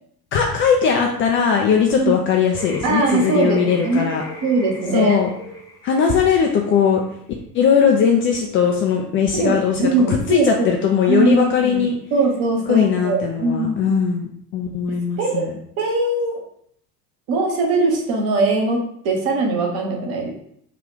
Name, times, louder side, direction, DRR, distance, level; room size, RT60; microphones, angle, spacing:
voice 1, 0.3-4.2 4.9-5.3 5.8-7.0 7.5-11.9 12.7-15.5, left 7 dB, 30° left, 2 dB, 0.3 m, -19 dB
sound 1, 2.5-7.3, left 2 dB, 5° left, 0.8 m, -36 dB
voice 2, 2.8-4.1 4.4-5.2 9.3-9.5 9.8-10.7 11.0-11.8 12.1-14.0 15.2-15.4 15.8-16.4 17.3-20.3, right 3 dB, 50° right, 1 dB, 1.1 m, -20 dB
3.6 x 2.4 x 3.5 m, 0.68 s
figure-of-eight pair, 70°, 49 cm